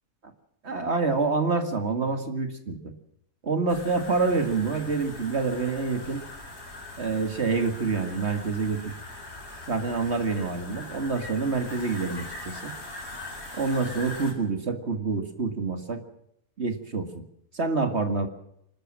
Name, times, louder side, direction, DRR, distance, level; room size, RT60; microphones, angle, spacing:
voice 1, 0.6-2.9 3.4-6.2 7.0-8.9 9.7-12.7 13.6-16.0 16.6-17.1 17.5-18.3, right 4 dB, 50° right, 7 dB, 2.2 m, -27 dB
sound 1, 3.7-14.3, left 2 dB, 50° left, 4.3 m, -41 dB
25.0 x 13.5 x 7.6 m, 0.73 s
omnidirectional pair, 1.5 m